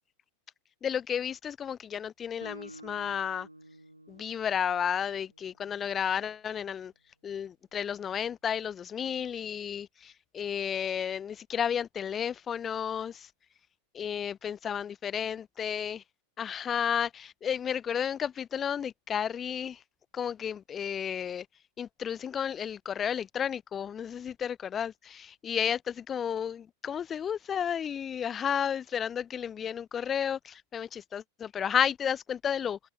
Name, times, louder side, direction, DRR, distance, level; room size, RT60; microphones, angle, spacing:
voice 1, 0.8-3.5 4.1-6.9 7.2-13.3 13.9-16.0 16.4-19.8 20.1-21.5 21.8-32.8, left 8 dB, 25° left, 0.6 m, -32 dB
Guitar, 2.4-6.1, right 1 dB, 85° right, 4.4 m, -51 dB
open air
figure-of-eight pair, 90°, 0 cm